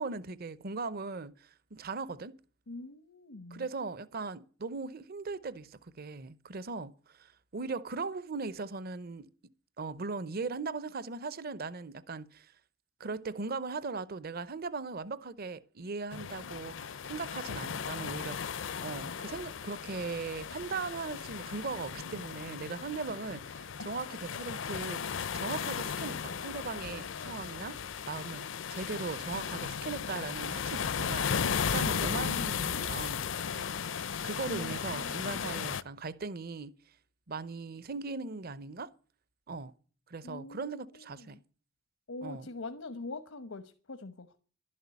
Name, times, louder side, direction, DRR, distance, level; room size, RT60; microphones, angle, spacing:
voice 1, 0.0-2.4 3.5-9.3 9.8-12.5 13.0-27.8 28.1-31.4 31.7-33.7 34.2-36.7 37.3-38.9 39.5-39.7 40.1-41.4 42.2-42.5, right 4 dB, 50° right, 0.7 m, -39 dB
voice 2, 2.7-3.7 34.5-35.5 40.2-40.8 41.2-41.3 42.1-44.4, left 2 dB, 90° left, 1.1 m, -43 dB
sound 1, 16.1-35.8, left 7 dB, 65° left, 0.6 m, -36 dB
12.0 x 11.0 x 8.3 m
head